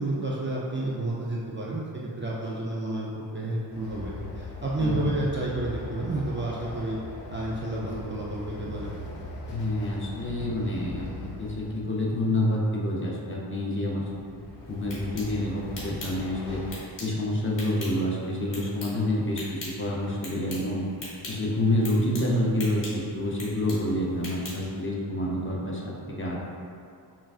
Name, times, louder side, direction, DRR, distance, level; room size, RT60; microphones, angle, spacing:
voice 1, 0.0-7.0 7.3-9.0, right 2 dB, 30° right, -6 dB, 0.4 m, -30 dB
Train, 3.7-12.2 14.0-16.8, left 2 dB, 70° left, 0.7 m, -40 dB
voice 2, 4.8-5.2 9.5-11.1 11.4-14.4 14.7-16.6 17.0-20.9 21.3-26.4, left 1 dB, 30° left, -4 dB, 0.5 m, -28 dB
sound 1, 14.6-24.8, left 1 dB, 45° left, 1.4 m, -43 dB
5.7 x 2.4 x 2.4 m, 2.4 s
wide cardioid pair, 120°, 43 cm